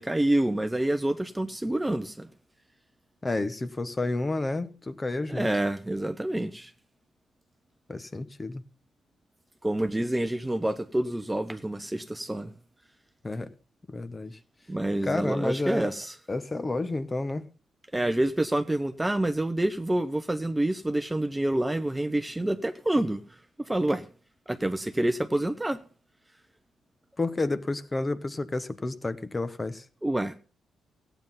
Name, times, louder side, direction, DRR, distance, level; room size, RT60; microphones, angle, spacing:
voice 1, 0.0-2.3 5.3-6.7 9.6-12.5 14.7-16.1 17.9-23.2 23.6-24.1 24.5-25.8 30.0-30.4, right 1 dB, 10° right, 0.9 m, -27 dB
voice 2, 3.2-5.5 7.9-8.6 13.2-13.5 13.9-14.4 15.0-15.9 16.3-17.5 27.2-29.8, left 2 dB, 20° left, 1.1 m, -30 dB
15.0 x 9.3 x 5.7 m
cardioid pair, 110°, 0 cm